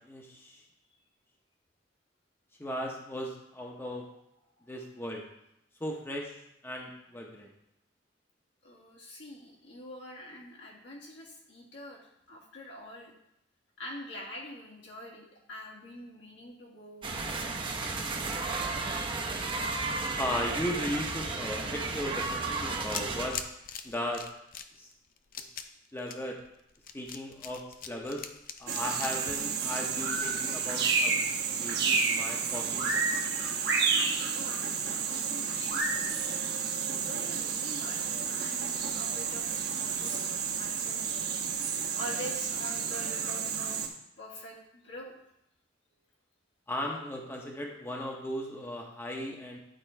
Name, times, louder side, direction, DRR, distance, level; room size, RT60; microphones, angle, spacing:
voice 1, 0.0-0.6 2.6-4.0 4.7-5.2 5.8-7.5 20.2-23.4 23.8-24.3 24.8-24.9 25.4-25.5 25.9-26.4 26.9-28.3 28.6-31.1 31.5-33.2 46.7-49.6, left 1 dB, 15° left, 0 dB, 0.8 m, -37 dB
voice 2, 8.6-13.1 13.8-17.7 34.3-35.9 36.9-38.0 38.3-41.1 41.9-43.8 44.2-45.1, equal, 75° left, -3 dB, 1.8 m, -45 dB
sound 1, 17.0-23.3, right 3 dB, 25° right, 0.6 m, -33 dB
sound 2, 22.8-30.3, left 7 dB, 50° left, 0.5 m, -43 dB
sound 3, 28.7-43.9, right 5 dB, 60° right, 1.1 m, -31 dB
10.0 x 3.7 x 4.4 m, 0.81 s
head